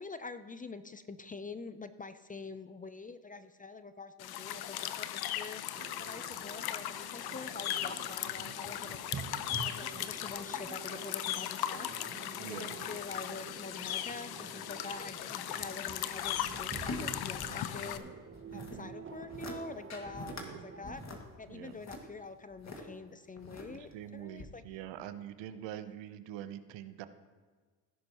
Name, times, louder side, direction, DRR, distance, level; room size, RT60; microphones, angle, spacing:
voice 1, 0.0-9.0 9.6-12.0 12.4-18.0 18.5-21.0 21.4-24.6 25.7-25.8, left 4 dB, 20° left, 12 dB, 0.5 m, -46 dB
sound 1, 4.2-18.0, left 11 dB, 55° left, 0.8 m, -38 dB
sound 2, 5.7-21.0, right 6 dB, 25° right, 0.9 m, -48 dB
voice 2, 12.4-12.7 18.5-18.9 20.2-20.6 21.5-21.8 23.7-27.1, right 11 dB, 70° right, 11 dB, 0.9 m, -45 dB
sound 3, 16.2-18.0 18.3-18.8 19.2-19.6 19.9-20.5 20.8-22.8 23.4-23.9 24.4-24.5, left 2 dB, 35° left, 2.1 m, -44 dB
17.0 x 10.5 x 3.0 m, 1.4 s
supercardioid pair, 70°, 45 cm